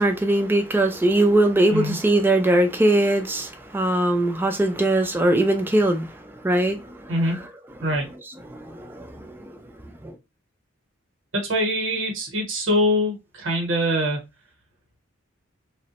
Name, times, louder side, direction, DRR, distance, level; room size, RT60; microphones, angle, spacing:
voice 1, 0.0-7.5 8.5-9.5 9.8-10.1, right 1 dB, 10° right, 0.3 m, -21 dB
voice 2, 11.3-14.2, equal, 70° right, 0.9 m, -23 dB
3.1 x 2.0 x 2.8 m
head